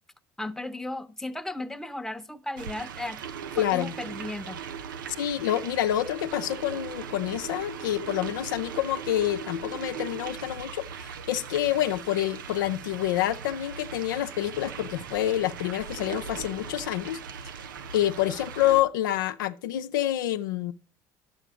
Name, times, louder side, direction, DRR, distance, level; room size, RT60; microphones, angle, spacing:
voice 1, 0.4-3.2 3.6-4.6, left 2 dB, 5° left, 0.9 m, -35 dB
sound 1, 2.6-18.8, right 7 dB, 85° right, 0.6 m, -39 dB
voice 2, 3.6-3.9 5.2-10.9 11.3-17.2 17.9-20.7, left 13 dB, 80° left, 0.5 m, -27 dB
11.0 x 7.6 x 5.1 m
hypercardioid pair, 65°, 11 cm